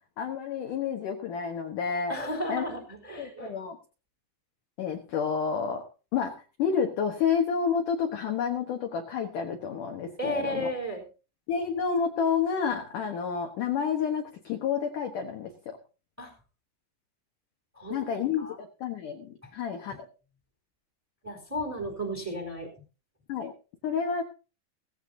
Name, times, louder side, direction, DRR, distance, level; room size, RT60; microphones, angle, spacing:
voice 1, 0.2-2.2 2.5-2.7 3.2-3.8 4.8-5.8 6.1-6.3 6.6-10.7 11.5-15.8 17.9-20.1 23.3-23.5 23.8-24.2, left 6 dB, 65° left, 4 dB, 2.2 m, -29 dB
voice 2, 2.1-3.5 10.2-11.0 16.2-16.3 17.8-18.0 18.4-18.5 21.2-22.7, equal, 5° right, 4 dB, 3.2 m, -33 dB
17.5 x 16.5 x 2.8 m, 0.33 s
omnidirectional pair, 5.2 m